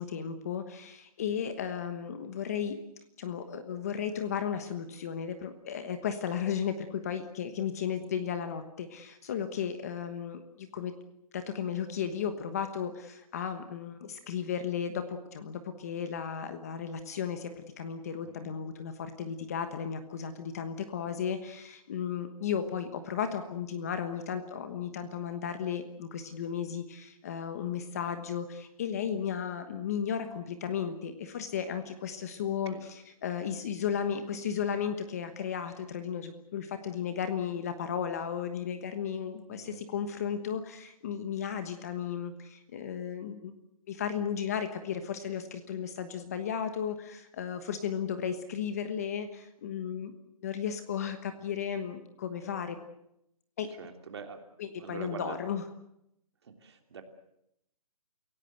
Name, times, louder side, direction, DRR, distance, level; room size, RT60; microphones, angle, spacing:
voice 1, 0.0-2.8 3.2-10.9 11.3-32.7 33.2-43.5 43.9-50.1 50.4-52.8 53.6-53.7 54.6-55.6, left 8 dB, 25° left, 9 dB, 1.3 m, -34 dB
voice 2, 18.2-18.5 32.4-32.9 39.5-39.8 53.7-54.4 54.8-55.4 56.4-57.0, right 5 dB, 45° right, 5 dB, 3.2 m, -44 dB
29.0 x 17.0 x 8.0 m, 0.80 s
hypercardioid pair, 175°, 20 cm